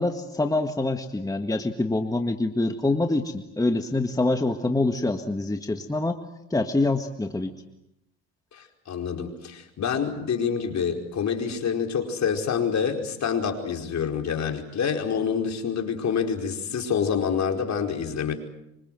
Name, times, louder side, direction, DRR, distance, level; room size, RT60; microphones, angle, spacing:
voice 1, 0.0-6.2 6.5-7.5, left 2 dB, 10° left, 5 dB, 1.8 m, -25 dB
voice 2, 8.5-18.3, left 7 dB, 45° left, 4 dB, 4.9 m, -27 dB
25.5 x 25.5 x 7.8 m, 0.87 s
supercardioid pair, 95°, 38 cm